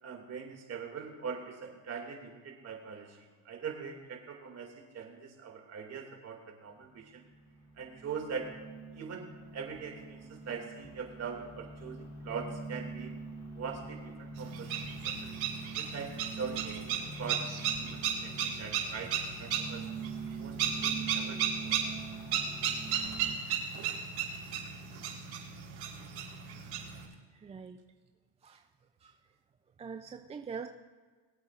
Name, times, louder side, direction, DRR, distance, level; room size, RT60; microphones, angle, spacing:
voice 1, 0.0-7.2 7.8-8.5 8.9-9.3 9.5-13.1 13.5-15.4 15.8-17.5 17.8-19.1 19.4-19.9 20.4-21.7, right 6 dB, 40° right, 2 dB, 2.4 m, -42 dB
sound 1, 6.8-23.3, right 4 dB, 55° left, 2.7 m, -44 dB
sound 2, 14.4-27.0, right 8 dB, 60° right, 4.0 m, -35 dB
voice 2, 27.4-27.8 29.8-30.7, right 6 dB, 15° right, 5 dB, 0.4 m, -41 dB
22.0 x 8.7 x 2.5 m, 1.4 s
supercardioid pair, 115°, 41 cm